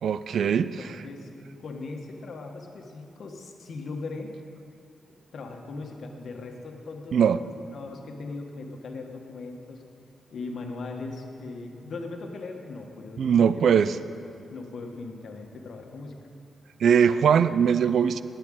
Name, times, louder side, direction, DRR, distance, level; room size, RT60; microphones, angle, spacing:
voice 1, 0.0-0.9 7.1-7.4 13.2-14.0 16.8-18.2, right 7 dB, 70° right, 14 dB, 0.4 m, -21 dB
voice 2, 0.6-4.3 5.3-9.8 10.3-13.8 14.5-16.2, left 3 dB, 60° left, 3 dB, 1.5 m, -39 dB
10.0 x 9.1 x 9.0 m, 2.6 s
cardioid pair, 110°, 0 cm